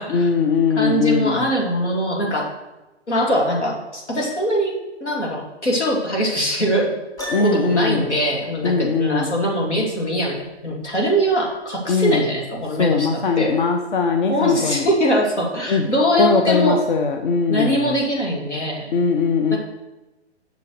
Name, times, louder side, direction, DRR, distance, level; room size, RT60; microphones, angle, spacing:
voice 1, 0.1-1.4 7.3-8.0 8.6-9.3 11.9-12.2 12.8-14.9 15.7-15.9 16.2-18.0 18.9-19.6, left 4 dB, 45° left, 5 dB, 0.8 m, -20 dB
voice 2, 0.8-2.5 3.1-4.7 5.0-6.9 7.4-10.4 10.6-13.6 14.3-16.8 17.5-18.9 19.5-19.6, equal, 80° left, -1 dB, 2.5 m, -22 dB
Piano, 7.2-8.0, left 1 dB, 10° left, 2.6 m, -32 dB
6.3 x 5.4 x 6.7 m, 1.0 s
figure-of-eight pair, 125°, 34 cm